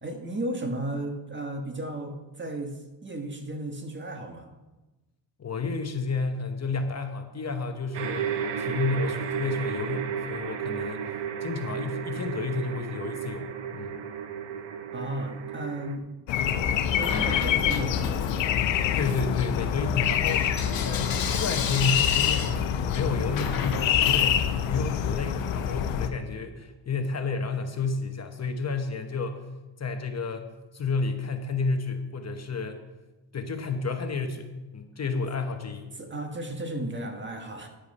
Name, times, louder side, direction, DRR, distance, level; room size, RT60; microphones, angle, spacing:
voice 1, 0.0-4.5 14.9-16.1 17.0-18.5 36.0-37.7, right 1 dB, 25° right, 4 dB, 1.4 m, -34 dB
voice 2, 5.4-8.3 8.6-14.0 18.9-29.5 29.8-30.5 30.7-32.8 33.3-36.0, left 4 dB, 35° left, 6 dB, 1.0 m, -31 dB
sound 1, 7.9-16.0, right 8 dB, 70° right, 1.0 m, -33 dB
sound 2, 16.3-26.1, left 9 dB, 85° left, 0.9 m, -26 dB
Bell / Coin (dropping), 17.0-18.5 18.9-24.9, left 7 dB, 50° left, 1.3 m, -35 dB
10.0 x 8.2 x 5.3 m, 1.1 s
cardioid pair, 105°, 44 cm